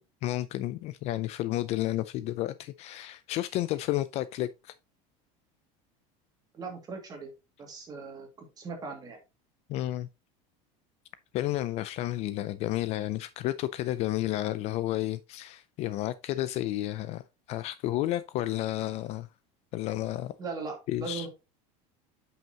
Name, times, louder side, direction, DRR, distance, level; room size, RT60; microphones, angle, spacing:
voice 1, 0.0-4.7 9.7-10.1 11.3-19.3 19.7-20.3 20.9-21.3, left 15 dB, 40° left, 0.4 m, -31 dB
voice 2, 6.5-7.3 7.6-9.2 20.4-21.3, right 4 dB, 25° right, 2.2 m, -39 dB
9.1 x 5.6 x 2.9 m
cardioid pair, 160°, 17 cm